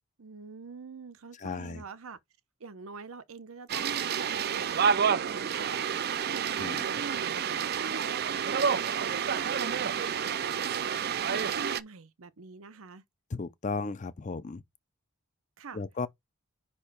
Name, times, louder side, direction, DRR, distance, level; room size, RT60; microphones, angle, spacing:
voice 1, 0.2-2.2 2.6-13.0 15.6-15.8, right 4 dB, 70° right, 0.8 m, -45 dB
voice 2, 1.4-1.8 6.6-6.8 13.3-14.6 15.7-16.1, left 4 dB, 35° left, 0.5 m, -35 dB
sound 1, 3.7-11.8, right 7 dB, 45° right, 0.4 m, -29 dB
5.5 x 4.3 x 5.0 m
head